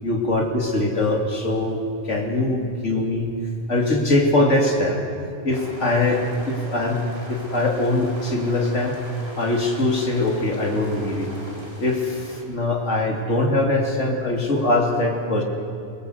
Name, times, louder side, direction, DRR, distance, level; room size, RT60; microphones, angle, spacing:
voice 1, 0.0-3.3 3.7-5.0 5.4-9.0 9.4-11.3 11.8-15.4, left 2 dB, 65° left, 0 dB, 3.5 m, -22 dB
sound 1, 5.5-12.4, right 1 dB, 50° right, 3.9 m, -40 dB
28.0 x 19.5 x 8.3 m, 2.5 s
omnidirectional pair, 1.3 m